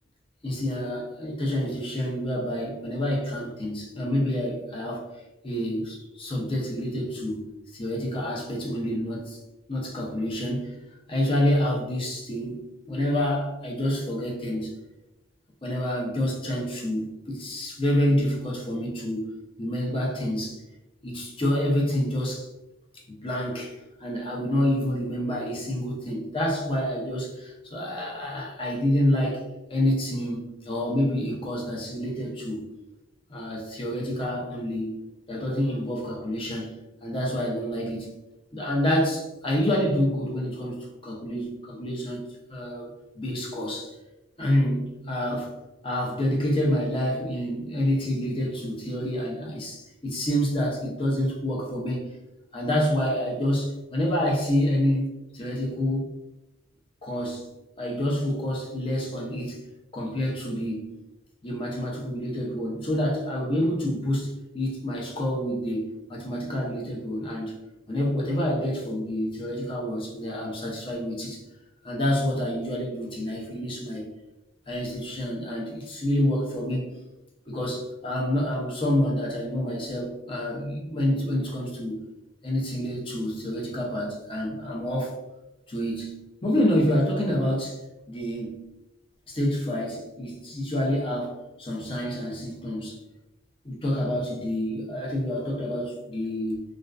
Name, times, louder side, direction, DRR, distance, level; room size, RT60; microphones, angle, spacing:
voice 1, 0.4-5.1 5.4-9.4 9.7-10.7 11.1-12.6 12.9-14.8 15.6-20.6 21.0-22.5 23.1-32.7 33.3-35.0 35.3-38.1 38.5-43.9 44.4-45.5 45.8-52.1 52.5-55.1 55.3-56.1 57.0-57.5 57.8-59.6 59.9-60.9 61.4-67.6 67.9-71.4 71.8-74.1 74.7-76.9 77.5-82.0 82.4-85.1 85.7-87.8 88.1-88.5 89.3-93.0 93.6-96.6, left 1 dB, 25° left, -2 dB, 0.5 m, -28 dB
2.4 x 2.2 x 2.3 m, 1.0 s
head